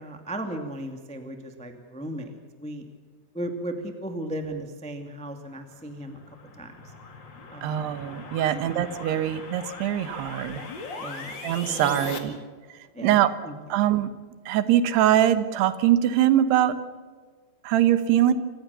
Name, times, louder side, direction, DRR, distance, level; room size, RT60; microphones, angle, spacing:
voice 1, 0.0-2.9 3.3-6.2 6.6-6.7 7.5-7.9 8.5-8.7 9.1-9.3 11.0-12.1 12.9-13.2 13.4-13.5, right 1 dB, 5° left, 5 dB, 0.6 m, -36 dB
sound 1, 5.7-12.2, left 4 dB, 35° left, 2.2 m, -40 dB
voice 2, 7.6-10.6 11.4-12.4 13.0-13.3 13.7-14.1 14.5-16.8 17.6-18.3, right 11 dB, 75° right, 12 dB, 3.2 m, -22 dB
28.0 x 15.5 x 6.9 m, 1.5 s
omnidirectional pair, 4.9 m